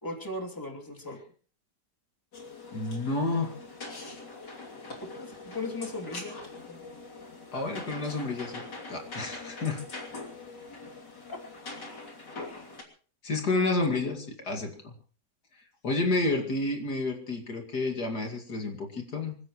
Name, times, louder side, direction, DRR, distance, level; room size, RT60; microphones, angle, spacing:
voice 1, 0.0-1.2 5.1-6.4 6.7-6.8 13.5-13.9, left 1 dB, 10° left, 1 dB, 3.0 m, -37 dB
sound 1, 2.3-12.8, left 3 dB, 85° left, 3.6 m, -43 dB
voice 2, 2.7-3.5 7.5-8.6 8.9-9.8 13.2-15.0 15.8-19.4, left 3 dB, 70° left, 3 dB, 2.9 m, -30 dB
26.0 x 15.5 x 3.1 m, 0.41 s
omnidirectional pair, 1.8 m